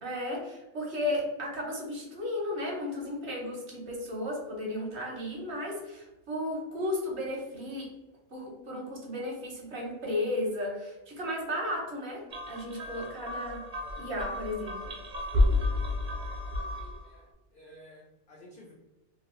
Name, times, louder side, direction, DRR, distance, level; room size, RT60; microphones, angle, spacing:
voice 1, 0.0-7.9 8.3-13.6 14.0-14.9, left 1 dB, 55° right, -2 dB, 1.0 m, -34 dB
sound 1, 12.3-17.1, left 2 dB, 75° right, 0.4 m, -31 dB
voice 2, 16.7-17.3 17.5-18.7, equal, 75° left, -2 dB, 0.4 m, -53 dB
2.9 x 2.5 x 3.0 m, 1.0 s
omnidirectional pair, 1.5 m